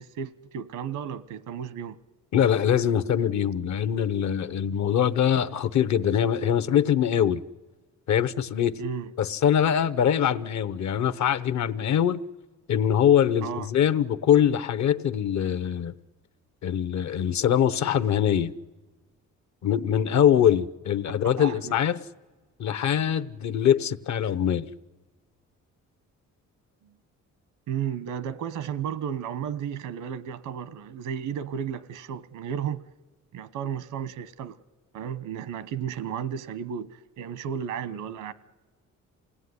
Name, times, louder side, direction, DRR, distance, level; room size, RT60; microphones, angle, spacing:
voice 1, 0.0-2.0 8.8-9.1 13.4-13.7 21.2-21.8 26.8-26.9 27.7-32.8 33.3-34.6 34.9-38.3, right 8 dB, 85° right, 1.2 m, -33 dB
voice 2, 2.3-7.4 8.1-8.8 9.2-12.2 12.7-15.9 16.6-18.5 19.6-22.0 22.6-24.7, left 9 dB, 65° left, 1.0 m, -23 dB
27.5 x 18.5 x 9.7 m
cardioid pair, 90°, 30 cm